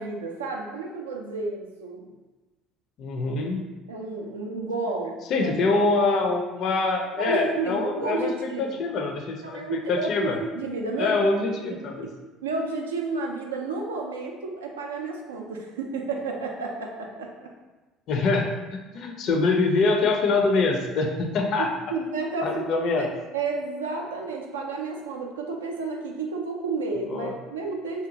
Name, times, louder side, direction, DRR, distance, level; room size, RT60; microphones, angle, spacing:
voice 1, 0.0-2.1 3.9-5.8 7.1-8.8 9.4-11.2 11.7-12.1 12.4-17.5 21.6-28.1, right 3 dB, 75° right, 1 dB, 0.3 m, -31 dB
voice 2, 3.0-3.7 5.3-8.3 8.8-9.6 9.9-10.4 11.0-12.1 18.1-21.7 22.4-23.1 27.1-27.3, left 3 dB, 50° left, 3 dB, 0.4 m, -24 dB
2.7 x 2.3 x 2.7 m, 1.2 s
figure-of-eight pair, 60°, 0 cm